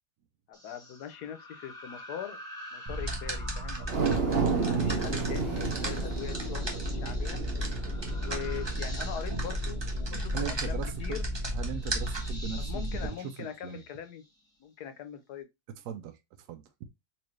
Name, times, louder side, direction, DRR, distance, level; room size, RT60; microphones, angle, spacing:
voice 1, 0.5-2.4 2.7-7.4 8.2-11.3 12.6-14.2 14.6-15.5, left 9 dB, 75° left, 1.2 m, -42 dB
sound 1, 0.5-14.4, left 1 dB, 5° left, 0.9 m, -49 dB
sound 2, 2.9-13.1, equal, 25° right, 0.6 m, -33 dB
sound 3, 3.8-10.3 10.7-10.8, right 5 dB, 50° right, 0.8 m, -32 dB
voice 2, 10.3-11.2 11.5-13.8 15.8-16.9, right 8 dB, 75° right, 1.1 m, -39 dB
4.3 x 2.6 x 3.0 m
omnidirectional pair, 1.8 m